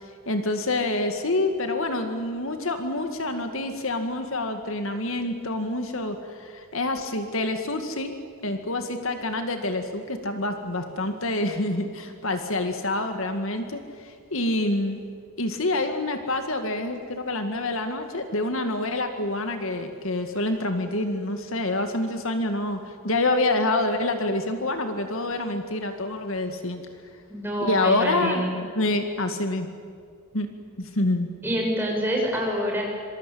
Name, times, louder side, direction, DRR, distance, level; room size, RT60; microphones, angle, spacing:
voice 1, 0.3-8.1 8.4-15.0 15.4-26.8 27.6-28.4 28.8-29.7 30.3-30.5 30.8-31.3, left 2 dB, 65° left, 6 dB, 2.2 m, -27 dB
voice 2, 27.3-28.5 31.4-32.8, equal, 10° right, -1 dB, 6.7 m, -26 dB
26.5 x 25.0 x 8.7 m, 2.1 s
head